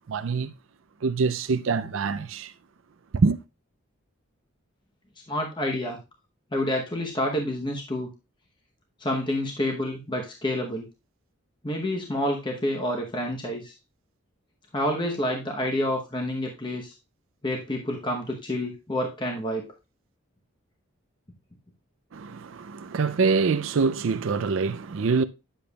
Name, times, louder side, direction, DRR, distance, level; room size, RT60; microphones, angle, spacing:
voice 1, 0.1-0.5 1.0-2.5 3.1-3.4 22.1-25.2, right 4 dB, 65° right, 0.4 m, -25 dB
voice 2, 5.3-6.0 6.5-8.1 9.0-10.9 11.6-13.7 14.7-16.9 17.4-19.7, left 1 dB, 20° left, 0.9 m, -28 dB
10.0 x 6.9 x 2.3 m
head